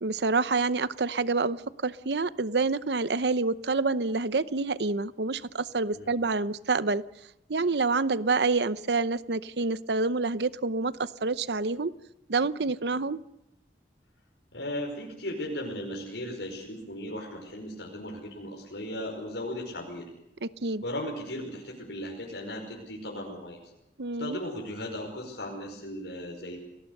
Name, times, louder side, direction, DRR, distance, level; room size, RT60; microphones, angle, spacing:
voice 1, 0.0-7.0 7.5-11.9 12.3-13.2 20.4-20.8 24.0-24.4, right 3 dB, 70° right, 15 dB, 0.8 m, -27 dB
voice 2, 14.5-20.1 20.8-23.6 24.2-26.6, left 1 dB, 80° left, -1 dB, 5.4 m, -36 dB
30.0 x 19.0 x 6.8 m, 0.84 s
head